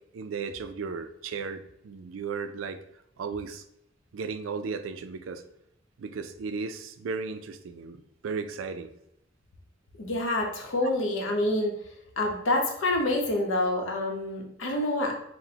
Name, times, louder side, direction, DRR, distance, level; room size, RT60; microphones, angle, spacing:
voice 1, 0.1-2.8 3.2-3.6 4.1-5.4 6.0-8.9, right 5 dB, 85° right, 9 dB, 0.4 m, -35 dB
voice 2, 10.0-11.7 12.2-15.1, left 1 dB, 80° left, 1 dB, 0.8 m, -27 dB
5.9 x 2.1 x 2.8 m, 0.77 s
head